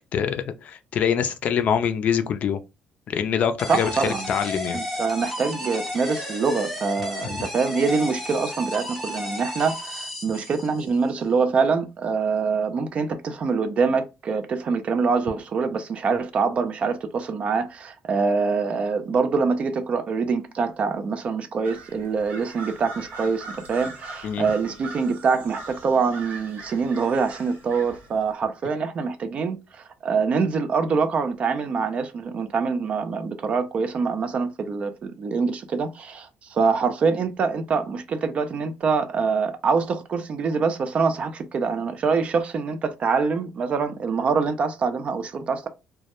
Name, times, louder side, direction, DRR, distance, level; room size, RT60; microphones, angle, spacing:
voice 1, 0.1-2.6 3.1-4.8 7.2-7.4 24.2-24.5, left 8 dB, 50° left, 0.3 m, -25 dB
sound 1, 3.6-10.9, left 1 dB, ahead, 0.6 m, -33 dB
voice 2, 3.7-4.3 4.7-45.7, right 5 dB, 40° right, 0.3 m, -25 dB
sound 2, 21.6-28.3, right 3 dB, 70° right, 0.9 m, -41 dB
2.2 x 2.0 x 2.8 m
cardioid pair, 140°, 3 cm